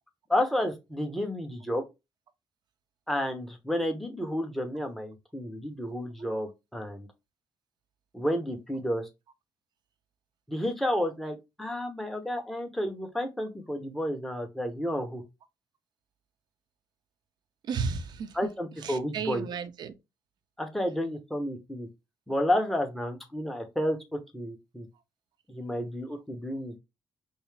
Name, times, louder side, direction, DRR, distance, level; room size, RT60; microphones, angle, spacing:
voice 1, 0.3-1.8 3.1-7.1 8.1-9.1 10.5-15.2 18.3-19.5 20.6-21.9 22.3-24.9 25.5-26.8, left 1 dB, 5° left, 1.0 m, -31 dB
voice 2, 17.6-18.4 18.8-19.9, right 6 dB, 60° right, 0.7 m, -33 dB
5.4 x 2.0 x 3.3 m
cardioid pair, 125°, 8 cm